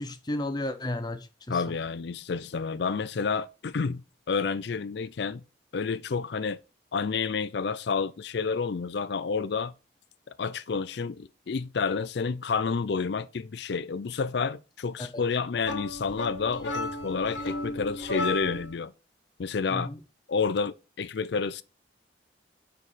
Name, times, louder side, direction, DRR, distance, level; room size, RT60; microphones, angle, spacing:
voice 1, 0.0-1.6 15.0-15.2 19.7-20.0, left 1 dB, 20° left, 0.6 m, -33 dB
voice 2, 1.5-5.4 5.7-6.6 6.9-9.7 10.3-18.9 19.4-19.9 20.3-21.6, left 5 dB, 60° left, 0.4 m, -30 dB
sound 1, 15.6-18.8, left 2 dB, 75° left, 1.2 m, -34 dB
4.8 x 4.5 x 5.6 m
head